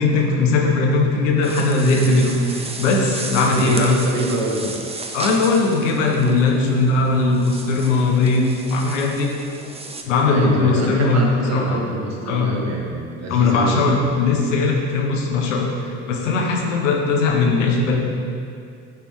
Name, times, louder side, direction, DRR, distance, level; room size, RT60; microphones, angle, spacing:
voice 1, 0.0-4.0 5.1-9.3 10.0-11.8 12.3-12.5 13.3-18.0, left 3 dB, 90° left, 0 dB, 1.1 m, -19 dB
sound 1, 1.4-10.0, right 3 dB, 15° right, 0.7 m, -34 dB
voice 2, 3.5-4.7 10.3-14.0, right 2 dB, 45° right, -2 dB, 1.6 m, -26 dB
9.3 x 3.5 x 4.7 m, 2.4 s
hypercardioid pair, 75°, 36 cm